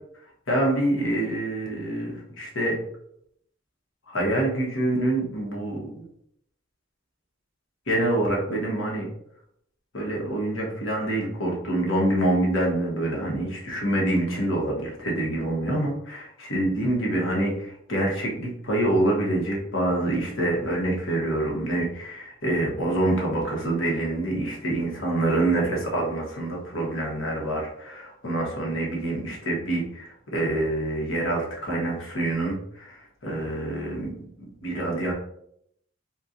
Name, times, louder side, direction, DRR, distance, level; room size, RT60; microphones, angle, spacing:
voice 1, 0.5-2.8 4.1-6.1 7.9-9.1 9.9-34.1 34.6-35.1, right 1 dB, 80° left, -3 dB, 1.3 m, -26 dB
4.3 x 2.3 x 2.6 m, 0.71 s
head